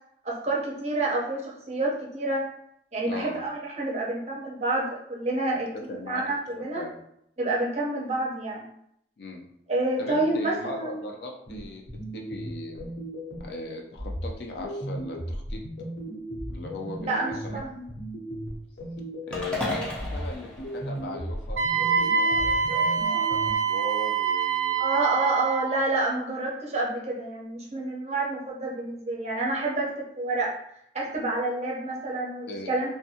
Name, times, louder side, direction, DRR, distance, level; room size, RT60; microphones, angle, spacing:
voice 1, 0.2-2.4 2.9-5.7 6.1-6.8 7.4-8.7 9.7-11.0 17.1-17.8 24.8-30.5 30.9-32.9, right 2 dB, 35° right, -3 dB, 0.6 m, -28 dB
voice 2, 3.1-3.4 5.9-6.2 6.5-7.0 9.2-9.5 10.0-11.8 12.1-12.9 13.4-15.6 16.5-17.6 19.3-24.8 32.5-32.9, left 2 dB, 65° left, 1 dB, 0.4 m, -38 dB
sound 1, 11.5-13.6 14.0-19.6 20.0-23.5, right 1 dB, 85° left, 0.9 m, -36 dB
sound 2, 19.3-21.6, left 2 dB, 5° left, 0.5 m, -34 dB
Wind instrument woodwind instrument, 21.6-25.7, right 6 dB, 80° right, 0.4 m, -25 dB
2.6 x 2.2 x 2.7 m, 0.72 s
head